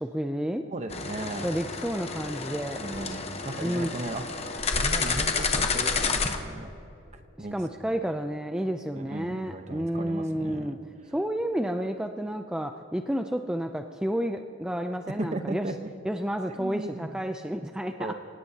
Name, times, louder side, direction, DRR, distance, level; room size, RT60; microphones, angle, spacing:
voice 1, 0.0-0.7 1.4-2.8 3.6-3.9 7.4-10.8 11.1-15.7 16.0-18.1, equal, 5° right, 5 dB, 0.4 m, -30 dB
voice 2, 0.7-1.5 2.8-4.2 4.7-6.7 7.1-7.5 8.9-10.7 15.2-15.9 16.6-17.2 17.9-18.1, right 2 dB, 35° right, 7 dB, 0.9 m, -36 dB
sound 1, 0.9-6.4, left 4 dB, 30° left, 0.9 m, -30 dB
27.0 x 17.5 x 2.8 m, 2.8 s
head